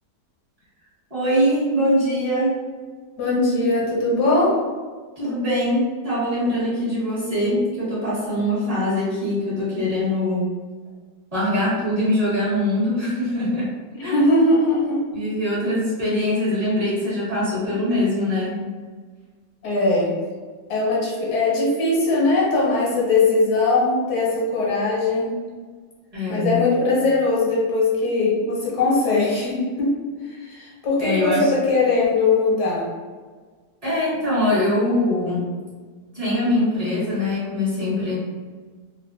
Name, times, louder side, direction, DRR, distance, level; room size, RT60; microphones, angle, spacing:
voice 1, 1.1-2.6 5.2-10.5 11.3-13.7 14.0-14.4 15.1-18.6 26.1-26.6 31.0-31.5 33.8-35.5 36.1-38.1, left 1 dB, 25° right, -10 dB, 0.9 m, -22 dB
voice 2, 3.2-4.5 14.0-15.0 19.6-20.1 20.7-25.3 26.3-29.9 30.4-32.8, left 2 dB, 70° left, -5 dB, 1.3 m, -20 dB
3.1 x 2.1 x 2.5 m, 1.5 s
omnidirectional pair, 1.8 m